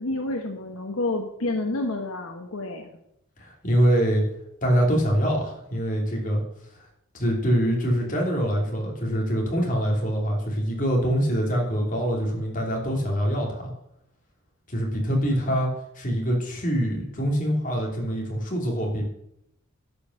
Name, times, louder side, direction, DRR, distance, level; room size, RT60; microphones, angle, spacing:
voice 1, 0.0-3.0, left 2 dB, 80° left, 4 dB, 1.1 m, -29 dB
voice 2, 3.4-4.2 4.6-6.4 7.1-13.7 14.7-19.0, equal, 40° left, -1 dB, 2.9 m, -24 dB
11.5 x 5.4 x 6.3 m, 0.76 s
head